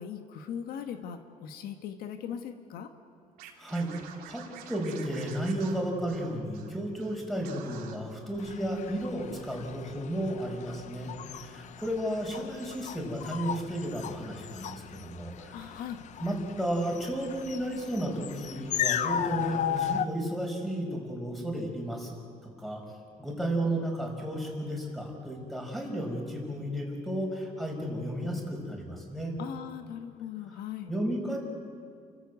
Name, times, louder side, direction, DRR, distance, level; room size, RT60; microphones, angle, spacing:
voice 1, 0.0-2.9 15.5-16.0 29.4-30.9, left 8 dB, 80° left, 7 dB, 1.4 m, -39 dB
Scratching (performance technique), 3.4-6.7 7.0-7.1 7.4-7.9, right 8 dB, 90° right, 2.9 m, -48 dB
voice 2, 3.6-3.9 4.3-15.8 16.2-22.1 22.4-22.8 23.2-29.3 30.9-31.4, right 1 dB, ahead, 1 dB, 5.3 m, -33 dB
sound 1, 8.4-20.1, left 10 dB, 50° left, 0.7 m, -36 dB
29.5 x 14.5 x 8.3 m, 2.2 s
cardioid pair, 125°, 15 cm